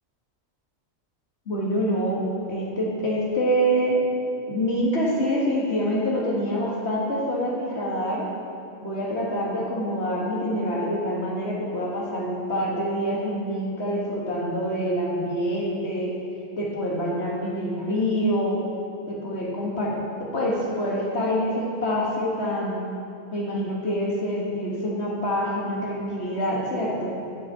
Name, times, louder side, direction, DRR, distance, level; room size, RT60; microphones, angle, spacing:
voice 1, 1.5-2.2 2.5-4.0 4.5-8.2 8.8-16.1 16.6-18.6 19.1-22.8 23.3-27.1, equal, 50° left, -3 dB, 2.0 m, -26 dB
8.1 x 6.8 x 8.0 m, 2.6 s
omnidirectional pair, 1.4 m